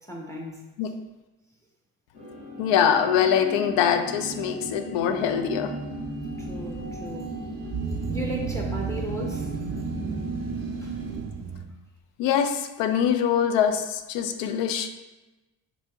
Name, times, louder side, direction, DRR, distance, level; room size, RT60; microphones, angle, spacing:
voice 1, 0.1-0.7 6.2-7.4 8.1-9.5 10.8-11.0, right 1 dB, 5° left, 0 dB, 0.6 m, -35 dB
sound 1, 2.1-11.2, right 2 dB, 75° left, 1.4 m, -36 dB
voice 2, 2.6-5.7 12.2-14.9, left 8 dB, 60° left, 7 dB, 0.5 m, -23 dB
sound 2, 5.9-11.6, right 5 dB, 35° right, 0.4 m, -34 dB
4.1 x 2.9 x 2.3 m, 1.1 s
hypercardioid pair, 45°, 50 cm